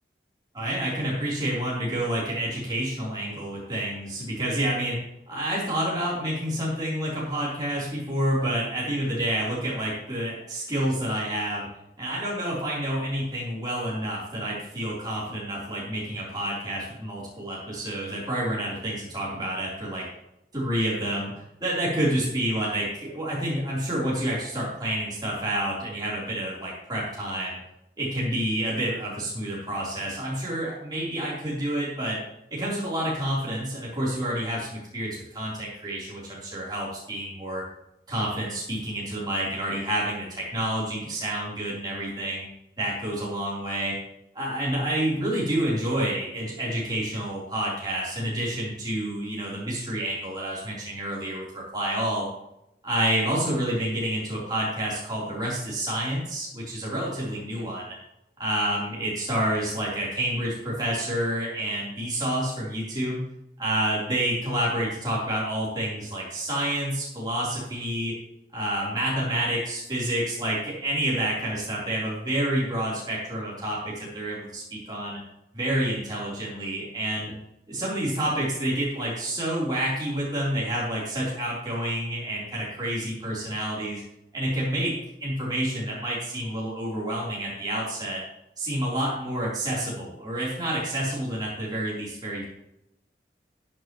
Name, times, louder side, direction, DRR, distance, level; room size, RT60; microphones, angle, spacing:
voice 1, 0.5-5.0 5.3-11.7 12.0-20.0 20.5-27.6 28.0-32.2 32.5-37.6 38.1-42.5 42.8-43.9 44.3-52.3 52.8-57.8 58.4-63.2 63.6-68.1 68.5-75.2 75.5-77.3 77.7-84.0 84.3-84.9 85.2-88.2 88.6-92.5, right 1 dB, 25° right, -7 dB, 3.8 m, -29 dB
14.0 x 8.7 x 3.2 m, 0.86 s
head